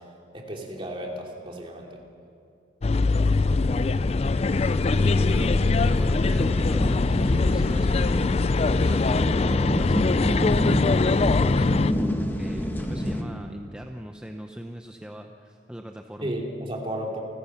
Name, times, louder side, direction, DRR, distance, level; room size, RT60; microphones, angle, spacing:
voice 1, 0.3-2.0 16.2-17.2, right 1 dB, 30° right, 0 dB, 3.0 m, -33 dB
sound 1, 2.8-11.9, left 3 dB, 35° left, 0.4 m, -22 dB
sound 2, 4.3-13.2, equal, 10° left, 1.3 m, -30 dB
voice 2, 5.0-16.3, equal, 5° right, 3 dB, 0.7 m, -39 dB
28.5 x 15.5 x 5.9 m, 2.7 s
head